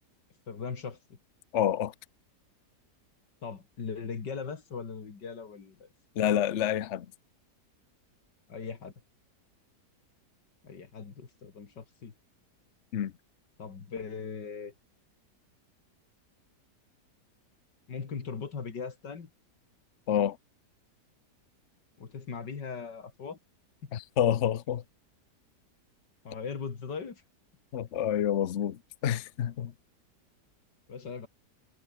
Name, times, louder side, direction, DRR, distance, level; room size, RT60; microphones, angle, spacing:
voice 1, 0.5-1.2 3.4-5.9 6.2-6.4 8.5-8.9 10.6-12.1 13.6-14.7 17.9-19.3 22.0-23.4 23.8-23.9 26.2-27.2 30.9-31.3, left 5 dB, 90° left, 3.1 m, -39 dB
voice 2, 1.5-1.9 6.2-7.1 12.9-13.1 20.1-20.4 23.9-24.8 27.7-29.7, left 10 dB, 50° left, 1.0 m, -28 dB
omnidirectional pair, 1.8 m